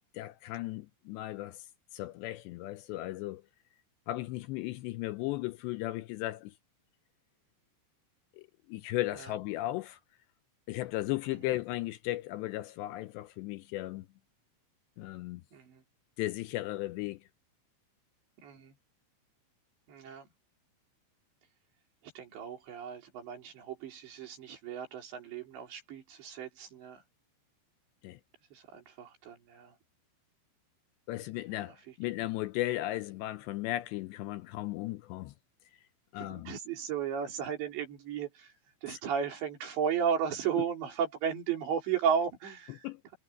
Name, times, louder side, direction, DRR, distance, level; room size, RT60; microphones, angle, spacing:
voice 1, 0.1-1.7 1.9-3.4 4.1-6.5 8.4-10.0 10.7-14.1 15.0-15.4 16.2-17.2 28.0-28.2 31.1-35.3 36.1-36.6 38.9-39.0 42.8-43.0, left 16 dB, 80° left, 2.7 m, -36 dB
voice 2, 15.5-15.8 18.4-18.7 19.9-20.3 22.0-27.0 28.5-29.8 31.7-31.9 36.2-38.5 38.8-42.9, right 7 dB, 70° right, 6.1 m, -34 dB
omnidirectional pair, 5.4 m